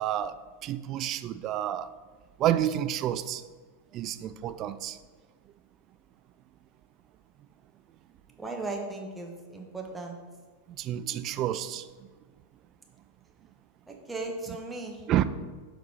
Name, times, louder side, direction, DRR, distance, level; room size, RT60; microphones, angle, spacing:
voice 1, 0.0-1.9 2.4-3.4 3.9-5.0 10.8-11.9 14.5-14.6 15.1-15.2, right 11 dB, 35° right, 13 dB, 0.3 m, -29 dB
voice 2, 8.4-10.2 13.9-15.0, right 2 dB, 10° right, 1 dB, 1.2 m, -37 dB
7.1 x 4.1 x 4.7 m, 1.4 s
figure-of-eight pair, 90°, 0 cm